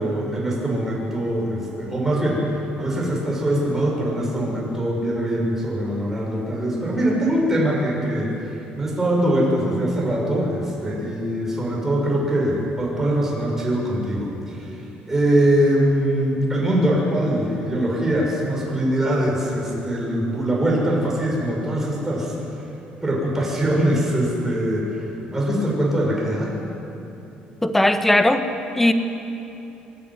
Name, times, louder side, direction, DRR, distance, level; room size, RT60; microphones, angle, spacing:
voice 1, 0.0-22.7 23.0-26.6, right 1 dB, 10° right, -3 dB, 6.5 m, -22 dB
voice 2, 27.6-28.5 28.7-28.9, left 1 dB, 5° left, 8 dB, 1.3 m, -17 dB
25.5 x 11.0 x 9.6 m, 2.9 s
cardioid pair, 120°, 3 cm